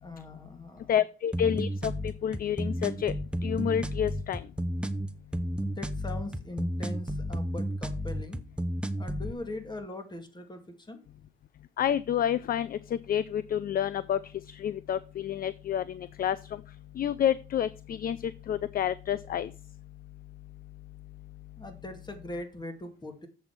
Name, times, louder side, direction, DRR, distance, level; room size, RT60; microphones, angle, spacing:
voice 1, 0.0-0.9 5.6-8.4 9.0-11.1 21.6-23.3, left 2 dB, 20° left, 6 dB, 2.2 m, -41 dB
voice 2, 0.9-4.5 11.8-19.8, left 9 dB, 50° left, 17 dB, 0.4 m, -30 dB
sound 1, 1.3-9.3, equal, 5° right, 0.8 m, -32 dB
7.7 x 5.6 x 5.9 m, 0.34 s
cardioid pair, 90°, 20 cm